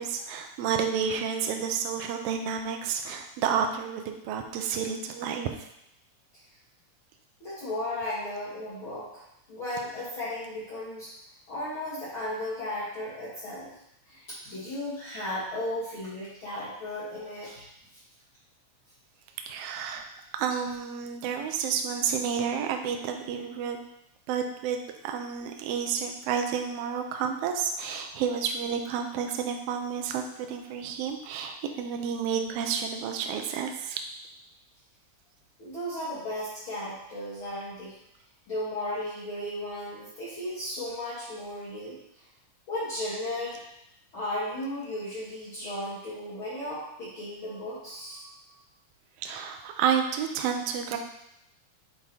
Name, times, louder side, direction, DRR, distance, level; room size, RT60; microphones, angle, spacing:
voice 1, 0.0-5.5 19.5-20.0 20.3-23.8 24.3-34.0 49.2-51.0, right 7 dB, 90° right, 4 dB, 1.4 m, -30 dB
voice 2, 7.4-9.2 9.5-11.1 11.5-13.7 14.1-17.7 35.6-37.9 38.5-42.0 42.7-43.6 44.1-48.4, left 1 dB, 45° left, -11 dB, 2.4 m, -35 dB
8.0 x 3.5 x 4.3 m, 0.79 s
omnidirectional pair, 3.6 m